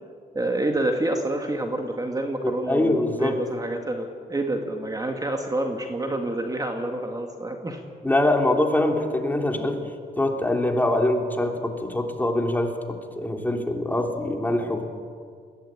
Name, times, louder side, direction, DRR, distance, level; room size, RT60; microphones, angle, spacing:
voice 1, 0.3-7.8, right 1 dB, 20° right, 4 dB, 2.2 m, -28 dB
voice 2, 2.4-3.4 8.0-9.8 10.2-12.7 13.1-14.8, left 1 dB, 10° left, 3 dB, 3.2 m, -23 dB
21.5 x 16.5 x 9.0 m, 2.1 s
cardioid pair, 80°, 18 cm